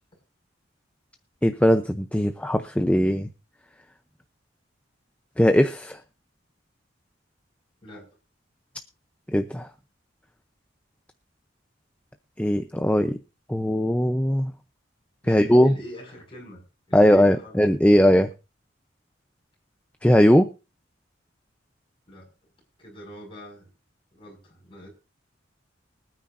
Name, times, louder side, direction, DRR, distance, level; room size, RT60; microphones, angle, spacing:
voice 1, 1.4-3.3 5.4-6.0 9.3-9.7 12.4-13.1 13.5-14.5 15.3-15.7 16.9-18.3 20.0-20.5, equal, 5° left, 7 dB, 0.6 m, -19 dB
voice 2, 15.2-17.6 22.1-22.3 22.8-23.7 24.1-24.9, equal, 30° left, -1 dB, 5.8 m, -44 dB
24.0 x 9.5 x 2.6 m, 0.30 s
head